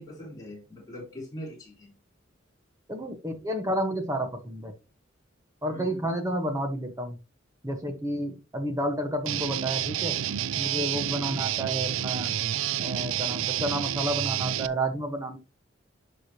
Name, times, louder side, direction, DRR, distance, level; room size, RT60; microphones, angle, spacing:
voice 1, 0.0-1.9 5.7-6.0 11.2-11.6, equal, 20° left, -4 dB, 4.1 m, -42 dB
voice 2, 2.9-4.7 5.6-7.2 7.6-10.2 10.6-12.3 12.8-15.4, right 1 dB, 15° right, 5 dB, 1.2 m, -30 dB
Guitar, 9.3-14.7, right 11 dB, 80° right, 0.4 m, -29 dB
11.5 x 5.0 x 2.9 m, 0.27 s
head